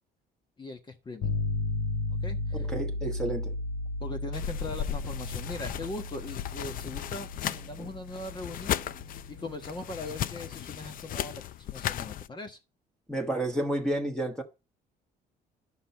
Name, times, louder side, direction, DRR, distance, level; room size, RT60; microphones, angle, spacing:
voice 1, 0.6-1.4 2.2-2.7 4.0-8.8 9.3-12.6, left 2 dB, 25° left, 1.2 m, -40 dB
sound 1, 1.2-11.1, left 3 dB, 75° left, 1.6 m, -35 dB
voice 2, 2.5-3.5 7.8-7.9 13.1-14.4, right 1 dB, 5° left, 1.4 m, -31 dB
sound 2, 4.3-12.3, left 11 dB, 55° left, 0.5 m, -36 dB
11.5 x 5.8 x 4.2 m
cardioid pair, 110°, 17 cm